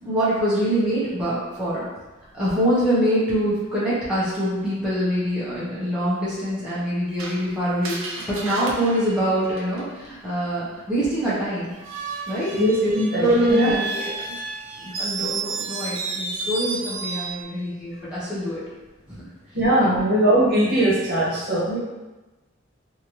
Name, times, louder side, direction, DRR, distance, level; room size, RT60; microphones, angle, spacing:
voice 1, 0.0-1.9 2.3-11.7 12.3-12.5 12.8-12.9 13.2-14.1 14.8-18.6 19.1-19.2 19.8-20.0 21.7-21.8, equal, 5° right, -11 dB, 0.8 m, -24 dB
Screech, 7.2-10.1 11.7-17.4, right 4 dB, 85° right, 0.5 m, -32 dB
voice 2, 12.5-13.7 19.5-21.7, right 1 dB, 50° right, -7 dB, 1.0 m, -20 dB
3.1 x 2.7 x 2.8 m, 1.1 s
head